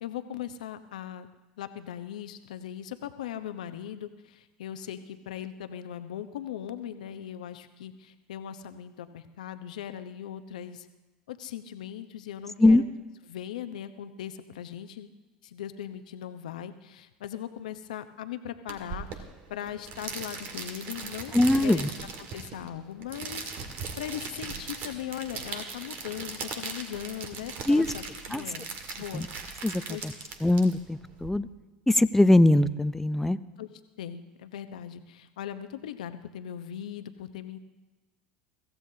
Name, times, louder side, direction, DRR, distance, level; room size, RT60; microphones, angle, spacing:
voice 1, 0.0-10.9 11.3-12.8 13.3-15.1 15.4-21.8 22.2-23.5 24.0-28.7 29.0-29.3 29.9-30.0 33.6-33.7 34.0-37.6, left 10 dB, 80° left, 10 dB, 0.9 m, -39 dB
sound 1, 18.7-31.3, right 5 dB, 55° right, 2.1 m, -39 dB
voice 2, 21.3-21.9 27.7-27.9 28.3-28.4 29.1-29.3 29.6-30.1 30.4-31.5 31.9-33.4, left 1 dB, 5° left, 13 dB, 0.7 m, -21 dB
23.5 x 15.5 x 2.8 m, 1.2 s
hypercardioid pair, 80°, 4 cm